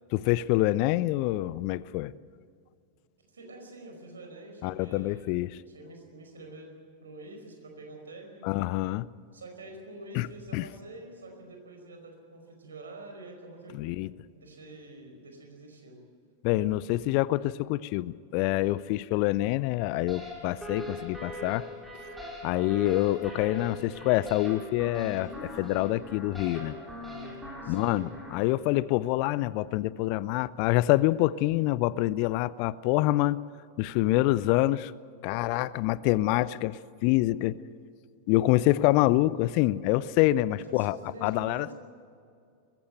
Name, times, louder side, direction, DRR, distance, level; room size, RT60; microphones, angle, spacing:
voice 1, 0.1-2.1 4.6-5.6 8.4-9.0 10.1-10.3 10.5-10.6 13.7-14.1 16.4-21.7 22.4-26.7 27.7-33.4 33.8-34.9 35.2-37.6 38.3-41.7, left 17 dB, 45° left, 20 dB, 0.5 m, -26 dB
voice 2, 3.3-5.3 5.7-6.7 7.0-8.6 9.3-13.8 14.3-16.0 27.6-28.0 40.5-41.7, right 2 dB, 70° right, 3 dB, 5.0 m, -46 dB
Speech, 19.9-20.0 25.2-25.9 27.1-27.3, left 1 dB, 15° left, 7.2 m, -46 dB
sound 1, 20.1-28.4, left 1 dB, 5° right, 5.8 m, -41 dB
21.0 x 16.0 x 9.0 m, 2.4 s
figure-of-eight pair, 90°, 0 cm